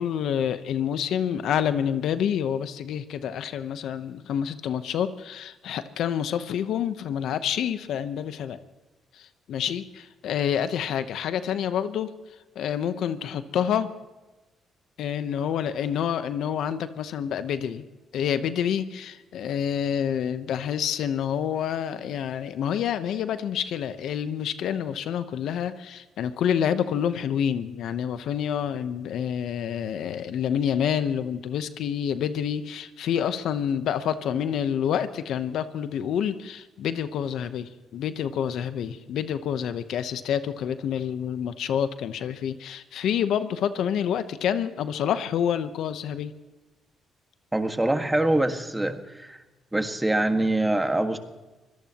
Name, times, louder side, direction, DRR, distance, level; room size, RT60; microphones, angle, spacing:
voice 1, 0.0-8.6 9.2-12.1 12.6-13.9 15.0-17.8 18.1-46.3, left 9 dB, 75° left, 11 dB, 0.9 m, -28 dB
voice 2, 47.5-49.4 49.7-51.2, right 1 dB, 10° right, 6 dB, 1.7 m, -24 dB
25.0 x 18.0 x 3.0 m, 1.1 s
cardioid pair, 90°, 0 cm